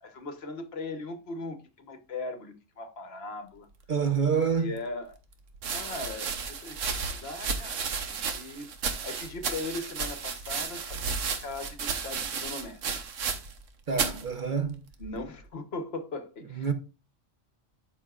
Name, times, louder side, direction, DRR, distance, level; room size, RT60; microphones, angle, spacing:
voice 1, 0.0-3.7 4.6-5.1 5.7-8.7 9.0-12.8 15.0-16.6, left 2 dB, 55° left, 1.2 m, -39 dB
voice 2, 3.9-4.8 13.9-14.8 16.5-16.7, right 6 dB, 45° right, 0.8 m, -27 dB
sound 1, 4.5-4.6 5.5-13.7 13.9-14.2 15.0-15.4, right 5 dB, 80° right, 1.3 m, -33 dB
12.5 x 5.6 x 2.4 m
omnidirectional pair, 1.3 m